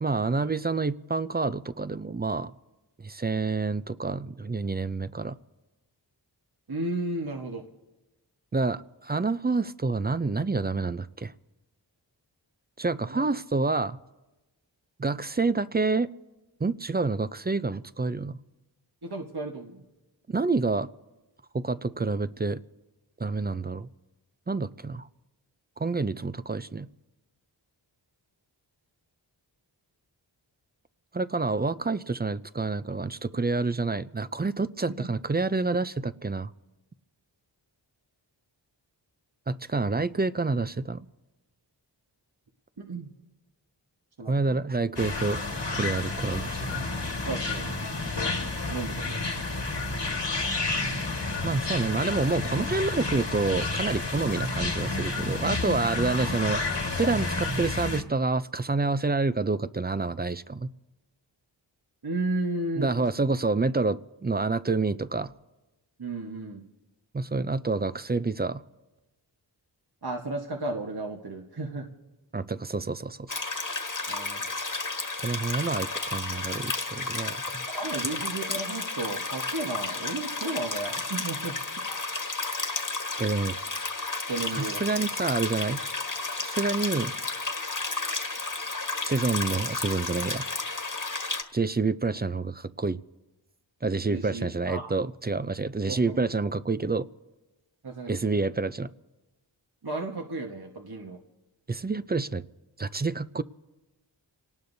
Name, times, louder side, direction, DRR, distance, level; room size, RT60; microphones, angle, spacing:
voice 1, 0.0-2.5 3.0-5.4 8.5-11.3 12.8-14.0 15.0-16.1 16.6-18.4 20.3-20.9 21.5-22.6 23.2-23.9 24.5-25.1 25.8-26.9 31.1-36.5 39.5-41.1 44.3-45.4 45.7-46.9 51.4-56.6 56.9-60.7 62.8-65.3 67.1-68.6 72.3-73.4 75.2-77.7 83.2-83.6 84.5-85.8 86.3-87.2 89.0-90.5 91.5-93.0 93.8-97.1 98.1-98.9 101.7-102.4 102.8-103.4, right 3 dB, 20° right, 0.4 m, -28 dB
voice 2, 6.7-7.6 13.0-13.3 19.0-19.8 34.9-35.1 42.8-43.1 44.2-44.6 47.2-47.8 48.7-49.0 62.0-63.3 66.0-66.6 70.0-71.9 74.1-74.4 77.7-81.5 84.3-84.8 94.1-94.9 95.9-96.3 97.8-98.3 99.8-101.2, right 2 dB, 55° right, 1.3 m, -34 dB
sound 1, 45.0-58.0, left 3 dB, 65° left, 1.7 m, -30 dB
sound 2, 73.3-91.4, left 3 dB, 45° left, 1.5 m, -32 dB
28.5 x 18.5 x 2.7 m
wide cardioid pair, 40°, 45 cm